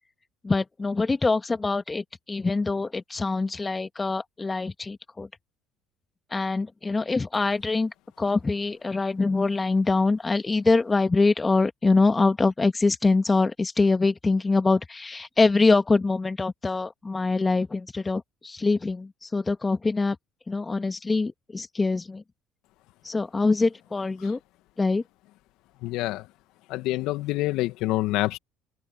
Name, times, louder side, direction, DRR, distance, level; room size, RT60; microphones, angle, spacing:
voice 1, 0.4-5.3 6.3-20.2 20.5-22.2 23.0-24.4 24.8-25.0, left 3 dB, 25° left, 2.1 m, -24 dB
voice 2, 25.8-26.3 26.7-28.4, left 18 dB, 70° left, 2.0 m, -27 dB
open air
hypercardioid pair, 65°, 0 cm